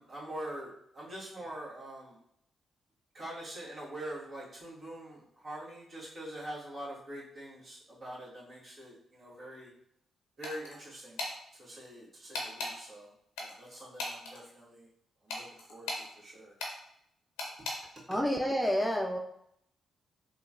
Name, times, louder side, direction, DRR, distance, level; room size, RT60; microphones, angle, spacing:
voice 1, 0.0-2.2 3.1-9.7 10.4-11.2 11.6-13.1 13.4-14.9 15.2-15.4 15.7-16.5 18.1-18.2, right 1 dB, 55° right, -7 dB, 1.5 m, -44 dB
sound 1, 10.4-10.8 11.2-11.3 12.3-12.7 13.4-14.4 15.3-16.1 16.6-16.7 17.4-17.8, left 2 dB, 85° left, 0.6 m, -37 dB
voice 2, 18.1-19.2, equal, 5° left, 1 dB, 0.5 m, -29 dB
3.8 x 2.3 x 2.4 m, 0.71 s
supercardioid pair, 50°, 0 cm